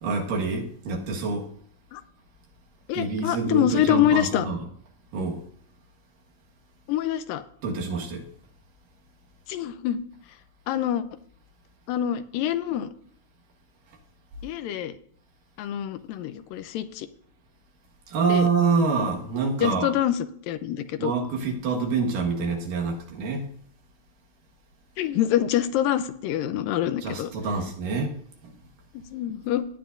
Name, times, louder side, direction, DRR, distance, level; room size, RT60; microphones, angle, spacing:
voice 1, 0.0-1.5 2.9-4.7 5.1-5.4 7.6-8.2 18.1-19.9 21.0-23.5 27.0-28.1, right 4 dB, 70° right, 0 dB, 3.2 m, -26 dB
voice 2, 2.9-4.5 6.9-7.4 9.5-10.0 10.7-11.0 11.9-12.9 14.4-14.9 15.6-17.1 18.3-18.5 19.6-21.1 25.0-27.3 29.1-29.7, left 11 dB, 85° left, 11 dB, 2.3 m, -25 dB
17.5 x 9.0 x 2.6 m, 0.64 s
omnidirectional pair, 4.1 m